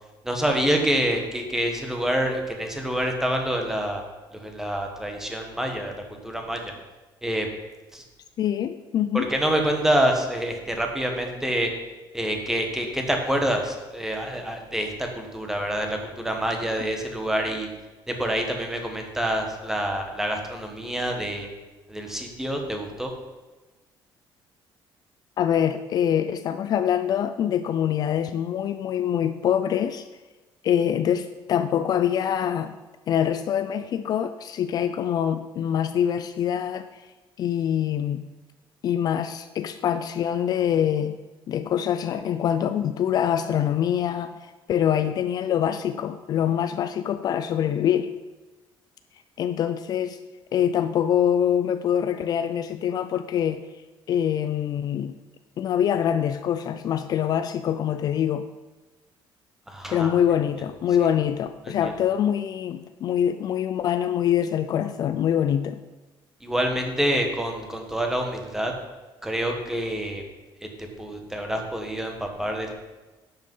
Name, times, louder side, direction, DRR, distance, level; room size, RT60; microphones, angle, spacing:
voice 1, 0.2-4.0 4.3-5.9 6.2-6.7 7.2-7.5 7.9-8.0 9.1-11.7 12.1-17.7 18.1-21.5 21.9-23.1 59.7-60.1 61.7-61.8 66.4-68.7 69.2-70.2 70.8-72.7, right 1 dB, 5° right, 3 dB, 1.5 m, -27 dB
voice 2, 8.4-9.3 25.4-30.1 30.6-32.8 33.1-37.1 37.4-38.2 38.8-41.2 41.5-48.1 49.4-50.2 50.5-53.7 54.1-55.2 55.6-58.5 59.9-65.8, left 9 dB, 45° left, 10 dB, 0.5 m, -24 dB
12.0 x 8.0 x 5.5 m, 1.2 s
cardioid pair, 170°, 9 cm